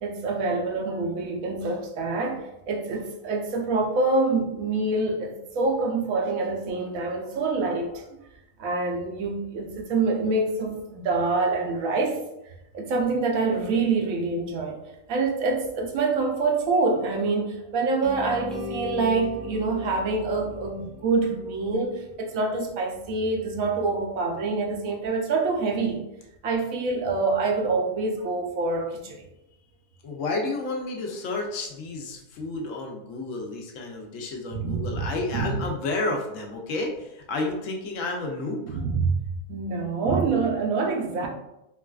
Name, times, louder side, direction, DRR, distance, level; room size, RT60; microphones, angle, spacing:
voice 1, 0.0-8.0 8.6-12.2 12.7-14.8 15.1-26.0 26.4-29.2 34.5-35.6 38.7-41.3, right 3 dB, 90° right, 1 dB, 1.1 m, -26 dB
sound 1, 18.0-22.1, left 2 dB, ahead, 0.4 m, -38 dB
voice 2, 30.0-38.8, left 2 dB, 75° left, 1 dB, 0.9 m, -31 dB
3.7 x 2.3 x 2.3 m, 0.89 s
omnidirectional pair, 1.4 m